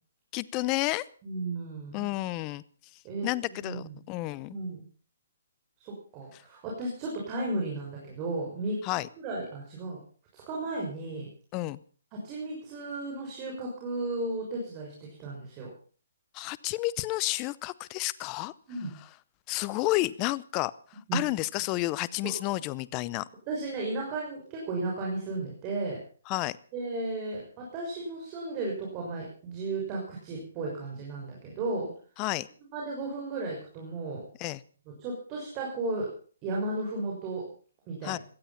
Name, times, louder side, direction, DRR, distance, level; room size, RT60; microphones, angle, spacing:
voice 1, 0.3-1.0 1.9-2.6 3.2-4.6 8.8-9.1 11.5-11.8 16.3-18.5 19.5-20.7 21.1-23.2 26.3-26.6 32.2-32.5 34.4-34.6 38.0-38.2, left 19 dB, 25° left, 20 dB, 0.7 m, -30 dB
voice 2, 1.2-2.1 3.0-3.9 4.5-4.8 5.8-8.8 9.2-10.0 10.3-11.3 12.1-15.7 18.7-18.9 21.1-21.2 22.2-22.3 23.5-26.0 26.7-31.9 32.7-34.2 35.0-36.1 36.4-37.4 37.9-38.1, right 2 dB, 25° right, -2 dB, 6.1 m, -34 dB
17.5 x 13.0 x 5.8 m, 0.43 s
hypercardioid pair, 150°, 0 cm